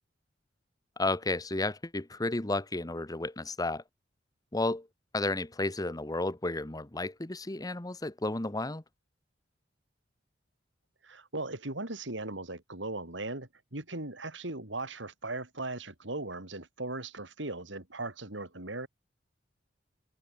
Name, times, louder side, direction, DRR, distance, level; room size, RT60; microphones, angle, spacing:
voice 1, 1.0-3.8 4.5-4.9 5.1-8.8, left 2 dB, 20° left, 1.1 m, -32 dB
voice 2, 11.0-18.9, right 2 dB, 85° right, 4.3 m, -38 dB
head